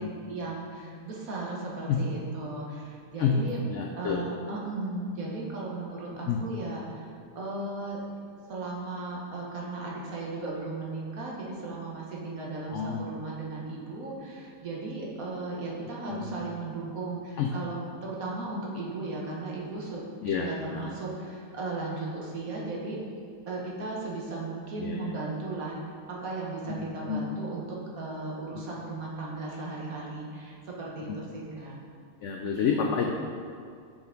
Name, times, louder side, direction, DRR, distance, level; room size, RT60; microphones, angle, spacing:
voice 1, 0.0-3.6 4.0-8.0 8.5-20.0 20.3-23.0 23.5-31.8 32.6-33.1, right 2 dB, 55° right, -4 dB, 1.5 m, -36 dB
voice 2, 3.2-4.2 6.3-6.4 12.7-13.0 16.1-16.4 17.4-17.5 20.2-20.9 24.8-25.0 26.7-27.3 32.2-33.1, left 6 dB, 85° left, 1 dB, 0.6 m, -29 dB
7.0 x 5.7 x 3.8 m, 2.3 s
omnidirectional pair, 1.8 m